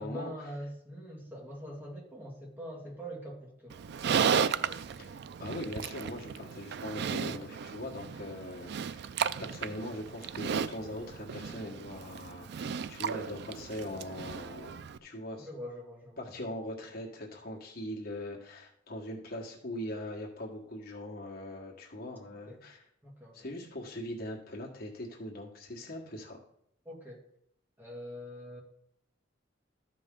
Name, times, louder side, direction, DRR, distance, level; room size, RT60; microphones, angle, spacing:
voice 1, 0.0-5.0 15.4-16.4 22.3-22.6 23.0-23.5 26.9-27.2 27.8-28.6, equal, 10° right, -2 dB, 2.0 m, -44 dB
Livestock farm animals working animals, 3.7-15.0, right 7 dB, 55° right, 0.3 m, -34 dB
voice 2, 5.4-9.0 9.4-15.5 16.2-22.8 23.3-26.4, left 1 dB, 50° left, -1 dB, 1.6 m, -41 dB
13.5 x 5.3 x 3.8 m, 0.74 s
head